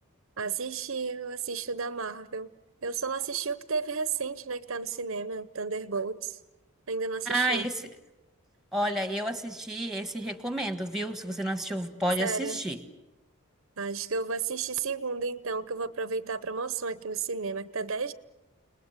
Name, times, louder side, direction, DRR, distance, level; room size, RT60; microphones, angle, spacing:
voice 1, 0.4-2.5 2.8-6.4 6.9-7.7 12.2-12.6 13.8-18.1, right 4 dB, 65° right, 14 dB, 0.8 m, -32 dB
voice 2, 7.3-7.9 8.7-12.8, right 1 dB, ahead, 9 dB, 1.5 m, -30 dB
30.0 x 20.0 x 8.1 m, 1.0 s
head